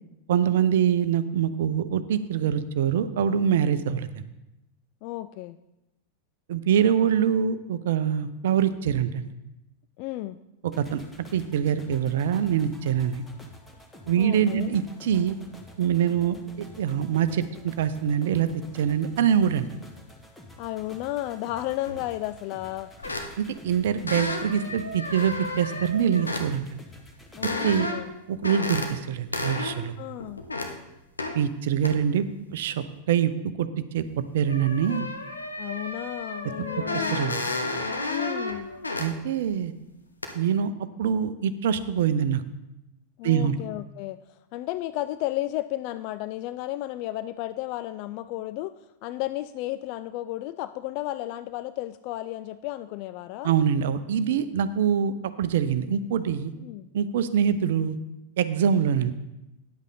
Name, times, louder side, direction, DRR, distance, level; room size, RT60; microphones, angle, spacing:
voice 1, 0.3-4.2 6.5-9.3 10.8-11.0 11.3-13.2 14.1-15.4 15.8-18.5 18.7-19.7 23.4-26.8 27.4-27.9 28.3-29.9 31.3-32.3 32.5-33.3 33.6-34.0 34.3-35.1 36.9-37.4 39.0-39.7 40.3-40.7 41.0-42.4 43.2-43.5 53.4-56.5 56.9-57.9 58.4-59.1, right 8 dB, 55° right, 13 dB, 0.6 m, -24 dB
voice 2, 5.0-5.6 10.0-10.4 14.2-14.7 20.6-22.9 27.4-28.1 30.0-30.4 35.6-37.2 38.1-38.7 43.2-53.5 56.6-56.9, left 15 dB, 45° left, 12 dB, 0.3 m, -33 dB
sound 1, 10.7-27.9, left 1 dB, 10° left, 1.3 m, -49 dB
sound 2, 21.9-22.1 23.0-23.6 24.1-26.5 27.4-28.1 28.4-28.9 29.3-29.8 30.2-30.7 31.2-31.4 31.8-32.0 34.0-34.1 34.5-39.1 39.5-39.6 40.2-40.3, left 2 dB, 80° left, 1.1 m, -32 dB
10.5 x 8.1 x 4.0 m, 0.94 s
figure-of-eight pair, 90°, 0 cm